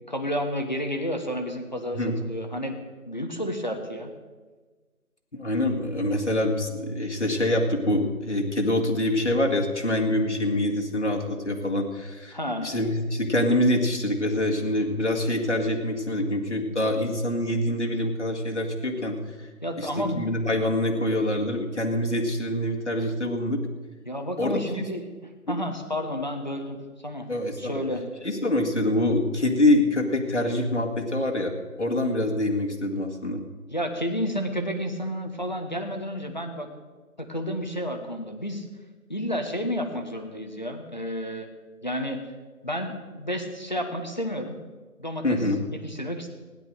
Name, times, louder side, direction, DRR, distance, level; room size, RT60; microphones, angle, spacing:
voice 1, 0.1-2.8 3.1-4.1 12.3-12.7 19.6-20.2 24.1-25.0 25.5-26.8 27.0-27.3 27.6-28.0 33.7-36.7 37.2-38.6 39.1-41.5 41.8-42.2 42.6-44.6 45.0-45.4 45.7-46.3, equal, 30° left, 5 dB, 1.2 m, -31 dB
voice 2, 5.3-19.2 19.8-23.6 24.4-24.8 25.5-25.6 27.3-27.8 28.2-33.4 45.2-45.6, left 1 dB, 50° left, 1 dB, 2.0 m, -25 dB
16.5 x 10.5 x 6.5 m, 1.3 s
figure-of-eight pair, 170°, 44 cm